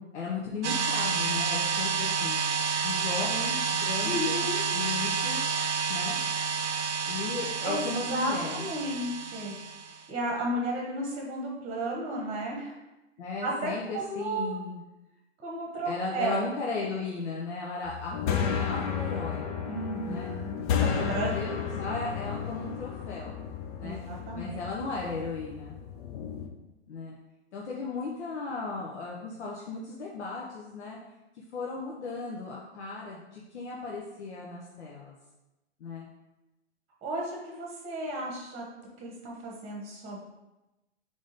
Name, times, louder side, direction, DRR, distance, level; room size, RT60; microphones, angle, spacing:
voice 1, 0.0-2.4 2.8-5.6 5.9-6.2 7.0-8.7 13.2-14.8 15.8-19.5 20.0-20.3 20.8-23.3 23.8-24.0 24.3-25.8 26.9-27.1 27.5-31.0 31.5-35.1 35.8-36.1, left 4 dB, 75° left, -4 dB, 0.9 m, -36 dB
sound 1, 0.6-10.0, right 5 dB, 85° right, 0.7 m, -29 dB
voice 2, 4.0-4.6 7.6-9.6 9.9-12.8 13.4-14.6 15.4-16.5 19.7-21.4 23.8-24.5 37.0-38.6 39.0-40.2, right 1 dB, 20° right, -1 dB, 1.0 m, -33 dB
sound 2, 17.8-26.5, left 7 dB, 35° left, 0.5 m, -33 dB
3.8 x 3.6 x 3.9 m, 1.0 s
hypercardioid pair, 120°, 34 cm